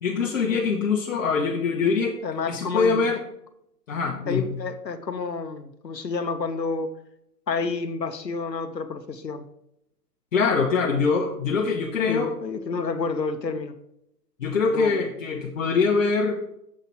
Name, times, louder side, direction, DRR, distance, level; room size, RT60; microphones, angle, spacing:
voice 1, 0.0-2.1 2.5-3.2 3.9-4.5 10.3-12.3 14.4-16.4, left 5 dB, 50° left, 1 dB, 1.0 m, -23 dB
voice 2, 2.2-3.0 4.3-6.9 7.5-9.4 12.1-13.7 14.7-15.0, left 4 dB, 85° left, 8 dB, 0.9 m, -29 dB
7.3 x 3.9 x 6.1 m, 0.77 s
figure-of-eight pair, 130°, 49 cm